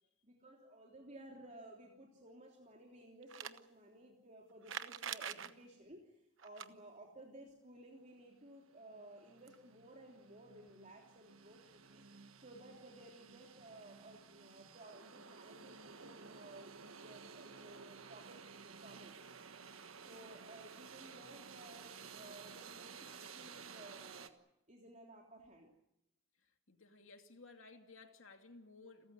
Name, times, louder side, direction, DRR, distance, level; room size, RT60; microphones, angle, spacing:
voice 1, 0.2-12.0 12.4-19.1 20.0-24.3 24.7-25.7, right 1 dB, 35° right, 3.3 m, -57 dB
sound 1, 3.2-3.6 4.6-5.5 6.4-6.7 9.2-9.3 9.5-9.6 10.7-10.8, right 8 dB, 65° right, 1.0 m, -43 dB
sound 2, 8.3-8.4 8.7-24.3, right 5 dB, 85° right, 1.5 m, -54 dB
voice 2, 26.4-29.1, left 3 dB, 70° left, 2.6 m, -58 dB
30.0 x 14.0 x 9.6 m
head